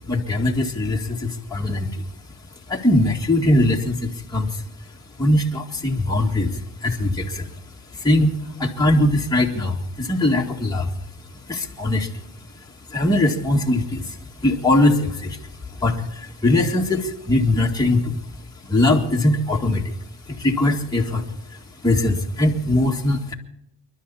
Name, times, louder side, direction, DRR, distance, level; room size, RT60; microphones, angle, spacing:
voice 1, 0.1-2.0 2.7-4.6 5.2-7.5 7.9-10.9 11.5-12.2 12.9-15.4 15.7-18.2 18.6-19.9 20.3-21.2 21.8-23.3, left 1 dB, 10° left, -2 dB, 2.0 m, -21 dB
28.5 x 11.5 x 4.2 m, 0.81 s
cardioid pair, 90°, 42 cm